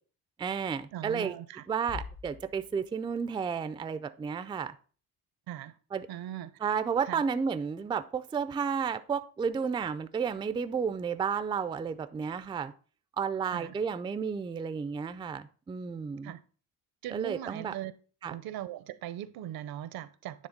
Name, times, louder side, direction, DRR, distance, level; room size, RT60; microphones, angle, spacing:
voice 1, 0.4-1.3 1.7-4.7 5.9-6.1 6.6-12.7 13.2-16.3 17.1-17.7 18.2-18.3, right 6 dB, 15° right, 0.3 m, -32 dB
voice 2, 0.9-1.6 5.5-5.7 6.1-6.5 7.0-7.2 13.5-13.7 16.2-16.4 17.0-17.9 18.3-20.5, right 12 dB, 70° right, 0.7 m, -39 dB
sound 1, 1.9-3.3, left 5 dB, 60° left, 1.4 m, -44 dB
9.7 x 3.4 x 5.1 m
cardioid pair, 130°, 37 cm